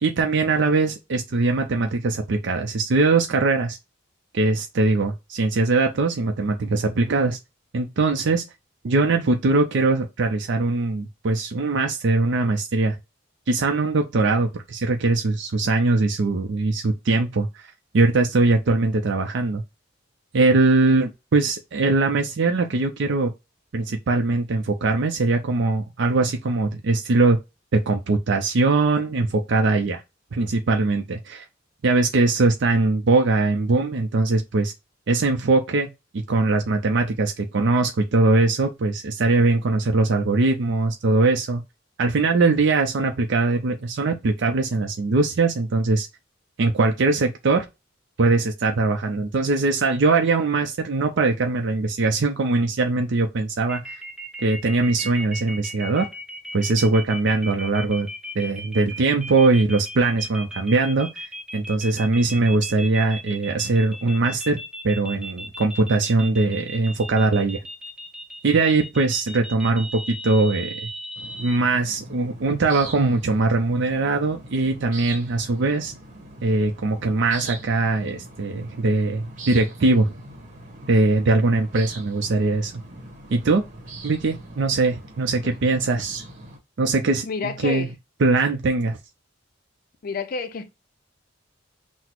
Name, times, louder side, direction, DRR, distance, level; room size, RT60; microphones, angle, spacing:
voice 1, 0.0-3.8 4.3-7.4 7.7-8.4 8.8-13.0 13.5-17.7 17.9-19.6 20.3-23.3 23.7-27.4 27.7-30.0 30.3-31.4 31.8-34.7 35.1-35.9 36.3-41.6 42.0-46.1 46.6-47.7 48.2-54.0 54.4-56.1 56.5-58.1 58.4-61.3 61.5-67.6 68.4-70.7 71.4-75.9 76.4-80.1 80.9-82.7 83.3-83.6 84.0-86.2 86.8-87.9 88.2-89.0, right 3 dB, 65° right, 0.5 m, -21 dB
sound 1, 53.7-71.6, right 1 dB, 5° right, 0.6 m, -36 dB
sound 2, 71.1-86.6, right 2 dB, 45° right, 1.3 m, -41 dB
voice 2, 87.3-87.9 90.0-90.7, left 4 dB, 50° left, 0.4 m, -29 dB
5.9 x 2.1 x 3.0 m
head